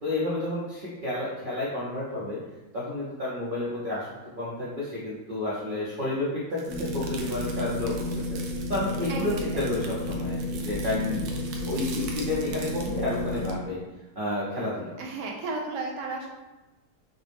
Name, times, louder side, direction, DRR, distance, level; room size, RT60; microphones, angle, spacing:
voice 1, 0.0-2.4 2.7-8.4 8.7-11.3 11.7-13.8 14.2-14.9, left 2 dB, 50° right, -7 dB, 0.6 m, -31 dB
sound 1, 6.6-13.5, right 5 dB, 90° right, 1.3 m, -44 dB
sound 2, 6.7-13.6, left 1 dB, 70° left, 1.0 m, -32 dB
voice 2, 9.1-9.7 15.0-16.3, right 3 dB, 75° right, 0 dB, 1.3 m, -34 dB
5.8 x 2.1 x 3.4 m, 1.1 s
omnidirectional pair, 1.9 m